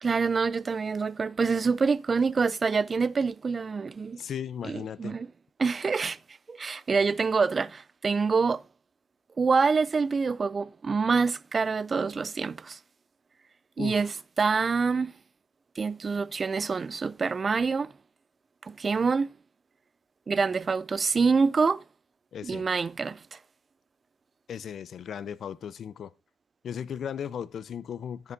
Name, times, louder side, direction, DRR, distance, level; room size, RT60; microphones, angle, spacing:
voice 1, 0.0-4.2 4.6-5.3 5.6-6.2 6.5-8.6 9.4-12.8 13.8-15.2 15.8-17.9 18.6-19.3 20.3-21.8 22.4-23.4, right 5 dB, 35° right, 0.4 m, -26 dB
voice 2, 4.2-5.2 13.8-14.1 22.3-22.7 24.5-26.1 26.6-28.3, left 8 dB, 60° left, 0.6 m, -36 dB
11.0 x 5.9 x 3.9 m
cardioid pair, 90°, 0 cm